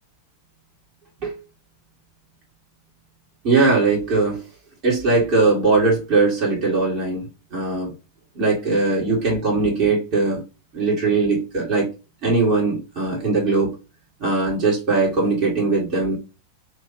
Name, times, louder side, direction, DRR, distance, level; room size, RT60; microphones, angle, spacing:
voice 1, 3.4-4.4 4.8-7.3 7.5-7.9 8.4-10.4 10.7-11.9 12.2-13.8 14.2-16.2, right 3 dB, 40° right, -4 dB, 2.1 m, -20 dB
5.9 x 2.8 x 2.9 m, 0.30 s
figure-of-eight pair, 90°, 0 cm